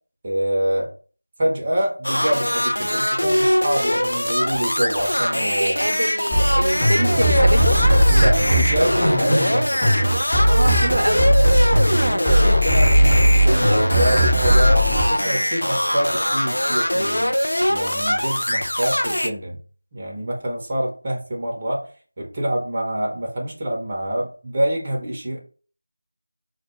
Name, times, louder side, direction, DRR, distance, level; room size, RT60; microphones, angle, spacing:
voice 1, 0.2-0.9 1.4-5.8 8.1-9.8 12.0-19.6 19.9-21.9 22.2-25.4, right 1 dB, 25° right, 0.5 m, -26 dB
sound 1, 2.0-19.3, equal, 85° left, 0.3 m, -22 dB
voice 2, 5.5-7.8 10.5-11.3, equal, 85° right, 0.5 m, -25 dB
sound 2, 6.3-15.0, equal, 15° left, 0.7 m, -18 dB
2.1 x 2.0 x 3.0 m
figure-of-eight pair, 170°, 0 cm